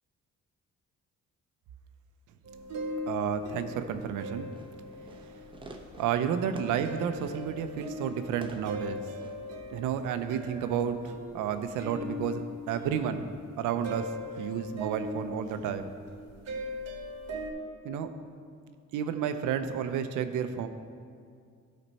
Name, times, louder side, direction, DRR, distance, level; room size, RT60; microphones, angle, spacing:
sound 1, 2.5-6.4 6.8-17.5, left 1 dB, 55° right, 1.2 m, -40 dB
voice 1, 3.1-4.5 6.0-9.0 9.7-13.3 13.6-14.1 14.4-15.9 17.8-18.1 18.9-20.7, right 8 dB, 90° right, 9 dB, 0.6 m, -31 dB
Fireworks, 4.4-9.6, right 2 dB, 15° right, 0.8 m, -51 dB
13.0 x 4.3 x 4.1 m, 2.2 s
cardioid pair, 90°, 30 cm